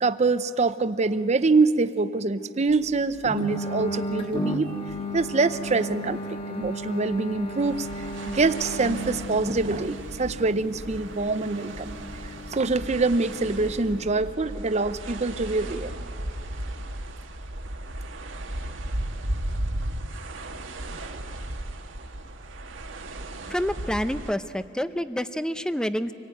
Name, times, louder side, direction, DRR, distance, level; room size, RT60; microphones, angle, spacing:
voice 1, 0.0-4.7 5.1-12.1 12.5-15.9, right 3 dB, 35° right, 13 dB, 0.6 m, -25 dB
sound 1, 3.2-14.1, equal, 30° left, 1.6 m, -35 dB
sound 2, 7.6-24.3, right 1 dB, 80° right, 1.5 m, -36 dB
voice 2, 23.5-26.1, equal, 5° left, 12 dB, 0.6 m, -28 dB
26.0 x 18.5 x 9.2 m, 2.7 s
head